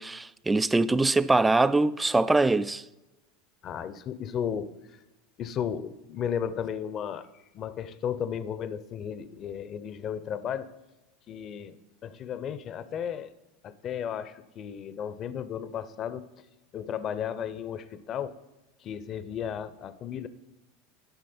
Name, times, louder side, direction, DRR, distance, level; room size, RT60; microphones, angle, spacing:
voice 1, 0.0-2.8, right 2 dB, 10° right, 0.3 m, -23 dB
voice 2, 3.6-5.0 5.4-10.7 11.3-13.3 13.6-16.3 16.7-18.4 18.8-20.3, left 8 dB, 40° left, 0.6 m, -34 dB
11.5 x 6.0 x 4.2 m
hypercardioid pair, 85°, 0 cm